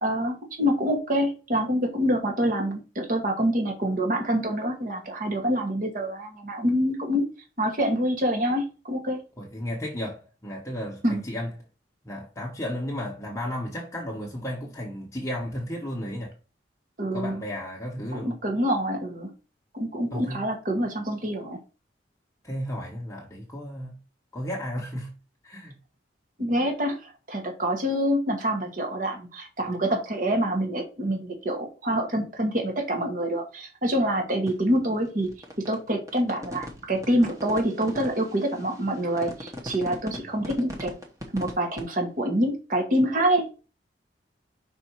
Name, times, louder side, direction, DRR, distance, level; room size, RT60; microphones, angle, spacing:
voice 1, 0.0-7.3 7.6-9.2 11.0-11.2 17.0-17.4 18.1-19.3 19.7-21.6 26.4-35.3 35.7-40.9 41.3-43.5, equal, 45° right, 1.2 m, -26 dB
voice 2, 9.4-11.5 12.0-16.3 17.1-18.4 20.1-20.5 22.4-24.0 24.3-25.1 25.4-25.8 40.1-40.3, equal, 15° left, 0.9 m, -33 dB
sound 1, 34.5-41.8, equal, 20° right, 1.0 m, -38 dB
5.4 x 4.2 x 4.5 m
head